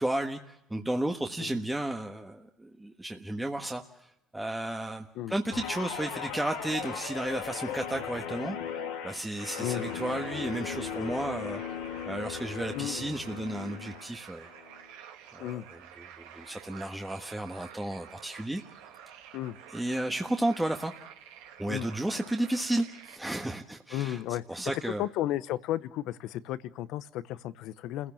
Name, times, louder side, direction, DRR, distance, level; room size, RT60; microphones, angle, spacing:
voice 1, 0.0-3.8 4.3-8.6 9.0-11.6 12.0-14.5 15.3-18.6 19.7-20.9 21.6-24.2 24.5-25.0, right 1 dB, 10° right, 3 dB, 1.4 m, -33 dB
Guitar, 5.5-14.1 14.5-14.8, left 8 dB, 90° left, 2.8 m, -37 dB
sound 1, 9.4-23.2, right 9 dB, 85° right, 2.1 m, -50 dB
voice 2, 9.6-10.0 12.7-13.0 15.4-15.6 19.3-19.6 21.7-21.9 23.9-24.4 24.8-28.1, left 13 dB, 70° left, 16 dB, 0.9 m, -34 dB
28.5 x 16.0 x 7.2 m, 0.84 s
supercardioid pair, 85°, 0 cm